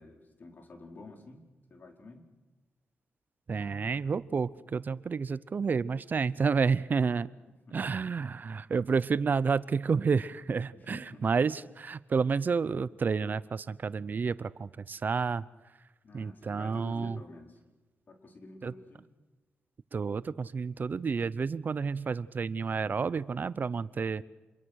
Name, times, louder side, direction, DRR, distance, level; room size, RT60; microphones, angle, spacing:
voice 1, 0.0-1.4 1.7-2.3 7.7-7.9 10.7-11.3 16.0-17.6 18.1-19.1, left 2 dB, 50° left, 4 dB, 4.5 m, -49 dB
voice 2, 3.5-7.3 7.7-15.4 16.1-17.2 18.6-18.7 19.9-24.2, right 5 dB, 50° right, 18 dB, 0.7 m, -30 dB
27.0 x 22.5 x 6.5 m, 1.2 s
cardioid pair, 80°, 4 cm